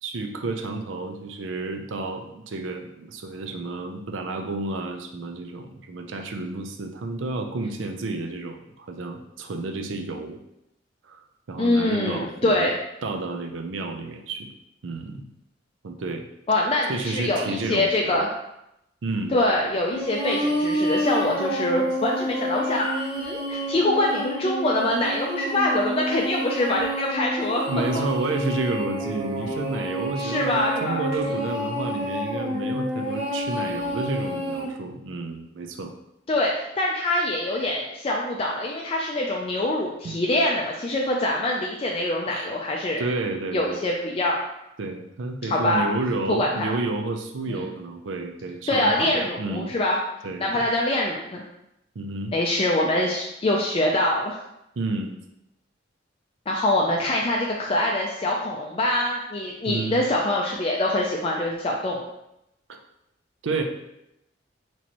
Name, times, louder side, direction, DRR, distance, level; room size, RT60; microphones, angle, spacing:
voice 1, 0.0-10.4 11.0-11.2 11.5-12.7 13.0-14.5 14.8-15.3 15.8-16.3 16.9-18.2 19.0-19.3 27.7-35.9 40.0-40.2 42.3-42.5 43.0-43.8 44.8-49.7 50.2-50.7 52.0-52.3 54.8-55.1 59.7-60.0 62.7-62.8 63.4-63.6, right 3 dB, 85° right, 5 dB, 0.5 m, -30 dB
voice 2, 11.6-12.7 16.5-18.3 19.3-27.6 30.2-31.0 36.3-43.0 43.5-44.4 45.5-45.9 46.3-46.7 47.5-47.6 48.7-50.0 50.4-51.4 52.3-54.4 56.5-62.0, left 1 dB, 30° left, -1 dB, 0.4 m, -24 dB
sound 1, 19.9-34.6, equal, 70° right, 1.5 m, -29 dB
4.3 x 3.1 x 2.9 m, 0.84 s
head